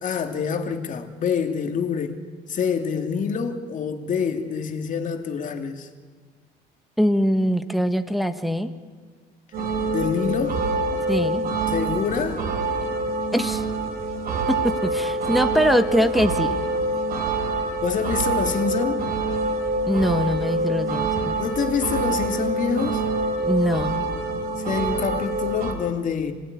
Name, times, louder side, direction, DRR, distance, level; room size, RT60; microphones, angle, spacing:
voice 1, 0.0-2.2 2.5-5.9 9.9-10.6 11.7-12.5 17.8-19.1 21.4-23.0 24.6-26.3, left 6 dB, 50° left, 2.7 m, -26 dB
voice 2, 7.0-8.7 11.1-11.4 13.3-13.6 14.5-16.6 19.9-21.3 23.4-24.1, equal, ahead, 1.6 m, -22 dB
sound 1, 9.5-25.7, right 2 dB, 65° right, 5.0 m, -26 dB
26.5 x 20.0 x 9.7 m
cardioid pair, 110°, 17 cm